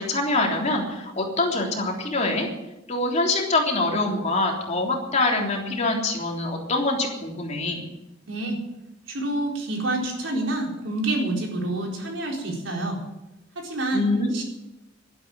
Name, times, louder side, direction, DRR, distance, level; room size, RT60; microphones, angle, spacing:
voice 1, 0.0-2.5 2.9-7.8 13.9-14.4, left 2 dB, 35° left, 0 dB, 3.4 m, -24 dB
voice 2, 8.2-8.6 9.1-13.0 13.6-14.1 14.3-14.4, right 2 dB, 85° right, 0 dB, 4.4 m, -27 dB
12.5 x 11.5 x 9.0 m, 0.95 s
head